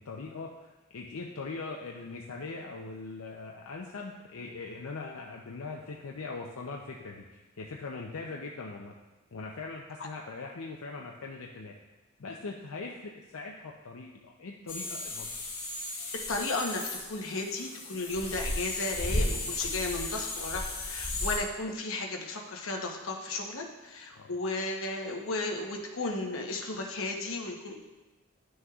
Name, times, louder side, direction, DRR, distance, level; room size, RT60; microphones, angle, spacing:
voice 1, 0.0-9.0 9.3-11.8 12.2-15.3 24.1-24.3, left 3 dB, 85° left, 0 dB, 0.6 m, -41 dB
sound 1, 14.7-21.4, left 2 dB, 50° left, 1.8 m, -35 dB
voice 2, 16.3-16.8 17.1-27.8, left 2 dB, 65° left, 1 dB, 1.0 m, -34 dB
11.0 x 6.3 x 2.4 m, 1.1 s
head